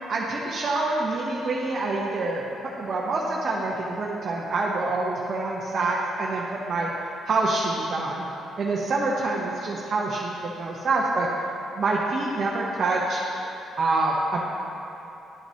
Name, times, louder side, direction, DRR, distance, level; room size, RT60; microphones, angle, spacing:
voice 1, 0.1-2.4 2.8-6.9 7.3-8.3 8.6-11.3 11.8-13.2 13.8-14.4, right 3 dB, 50° right, -4 dB, 0.8 m, -26 dB
11.5 x 5.9 x 2.8 m, 2.9 s
cardioid pair, 90°, 0 cm